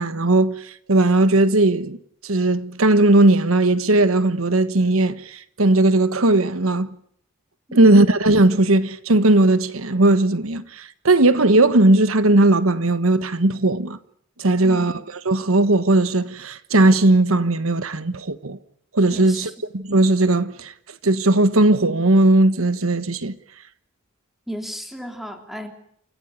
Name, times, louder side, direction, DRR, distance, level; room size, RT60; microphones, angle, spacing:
voice 1, 0.0-2.0 2.2-6.9 7.7-14.0 14.4-14.9 15.2-18.6 18.9-20.7 21.0-23.4, right 2 dB, 85° right, 1.3 m, -17 dB
voice 2, 7.7-8.0 14.6-15.0 19.1-19.5 24.5-25.7, equal, ahead, 3.4 m, -34 dB
29.0 x 15.0 x 9.6 m
head